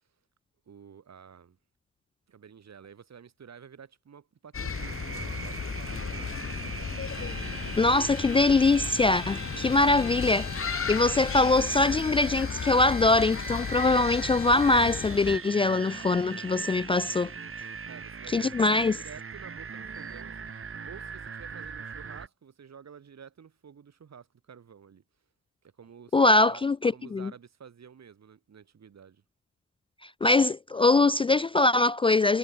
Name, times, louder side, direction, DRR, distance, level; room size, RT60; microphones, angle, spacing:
voice 1, 0.7-1.6 2.3-6.9 11.0-11.3 17.9-20.4 20.8-25.0 25.6-26.6 26.9-29.2, right 7 dB, 65° right, 7.6 m, -50 dB
sound 1, 4.5-15.4, left 6 dB, 45° left, 1.7 m, -35 dB
sound 2, 4.7-22.3, right 5 dB, 45° right, 2.6 m, -40 dB
Bowed string instrument, 7.0-15.2, left 10 dB, 80° left, 4.5 m, -44 dB
voice 2, 7.8-10.5 10.9-17.3 18.3-19.0 26.1-27.3 30.0-32.4, left 3 dB, 20° left, 0.3 m, -23 dB
supercardioid pair, 50°, 30 cm